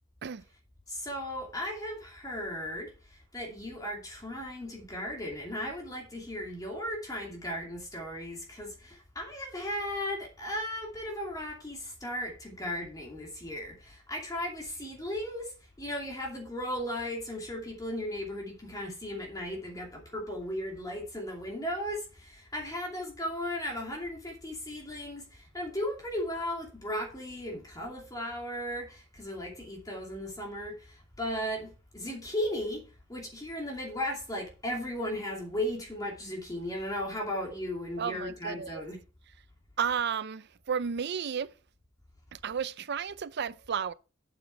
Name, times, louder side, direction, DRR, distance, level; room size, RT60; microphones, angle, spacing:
voice 1, 0.9-15.5 15.8-32.8 33.1-39.0, left 1 dB, 20° left, 2.6 m, -36 dB
voice 2, 38.0-38.8 39.8-41.5 42.3-43.9, right 7 dB, 55° right, 0.5 m, -33 dB
8.9 x 7.2 x 4.6 m
head